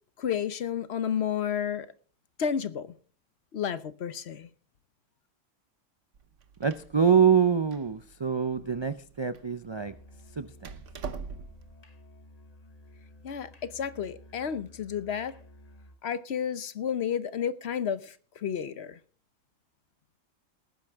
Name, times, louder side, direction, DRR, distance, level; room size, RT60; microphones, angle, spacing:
voice 1, 0.2-1.9 2.4-2.9 3.5-4.5 13.2-15.3 16.0-19.0, left 8 dB, 60° left, 1.0 m, -31 dB
Door, 6.1-11.7, right 5 dB, 70° right, 1.3 m, -44 dB
voice 2, 6.6-9.9 10.4-10.8, right 7 dB, 45° right, 0.3 m, -25 dB
Musical instrument, 9.7-16.1, left 1 dB, 35° left, 1.1 m, -53 dB
18.5 x 10.5 x 3.5 m
omnidirectional pair, 1.3 m